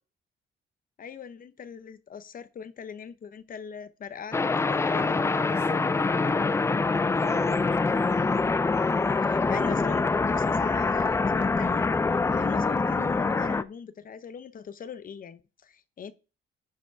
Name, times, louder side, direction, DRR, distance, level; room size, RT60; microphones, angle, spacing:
voice 1, 1.0-5.3 9.2-16.1, left 7 dB, 40° left, 0.8 m, -41 dB
sound 1, 4.3-13.6, left 3 dB, 15° left, 0.3 m, -25 dB
voice 2, 4.8-8.3, right 6 dB, 80° right, 3.2 m, -46 dB
10.0 x 5.0 x 4.7 m
cardioid pair, 155°, 21 cm